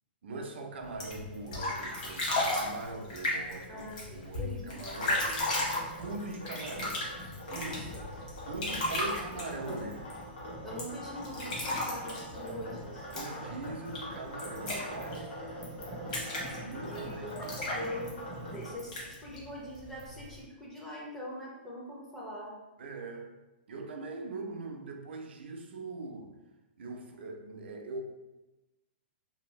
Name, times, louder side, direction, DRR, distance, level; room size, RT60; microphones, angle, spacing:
voice 1, 0.2-5.2 6.0-7.1 7.5-7.9 8.4-10.0 13.1-15.4 16.6-17.9 22.8-23.3 23.7-26.4 26.8-28.0, right 3 dB, 80° right, 3 dB, 0.5 m, -41 dB
sound 1, 0.8-20.4, left 1 dB, 45° left, 0.9 m, -36 dB
voice 2, 3.7-5.5 7.5-8.0 9.6-9.8 10.6-13.1 16.8-18.2 18.5-22.6, equal, 5° left, -5 dB, 0.4 m, -43 dB
sound 2, 4.9-18.7, equal, 90° left, 1.3 m, -43 dB
2.6 x 2.6 x 3.0 m, 1.1 s
hypercardioid pair, 175°, 6 cm